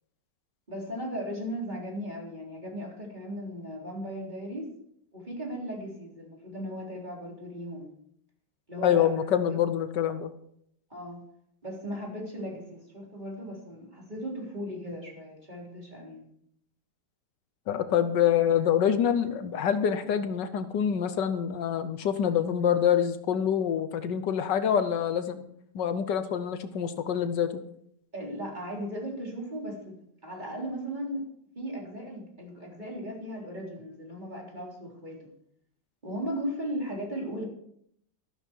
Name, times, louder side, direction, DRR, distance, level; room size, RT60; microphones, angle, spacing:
voice 1, 0.7-4.7 5.1-7.9 8.7-9.1 10.9-11.2 11.6-16.3 28.1-31.2 31.6-35.2 36.0-37.4, equal, 25° right, -2 dB, 3.9 m, -37 dB
voice 2, 8.8-10.3 17.7-25.4 25.7-27.6, left 9 dB, 75° left, 10 dB, 1.5 m, -26 dB
13.0 x 12.5 x 4.6 m, 0.71 s
omnidirectional pair, 1.9 m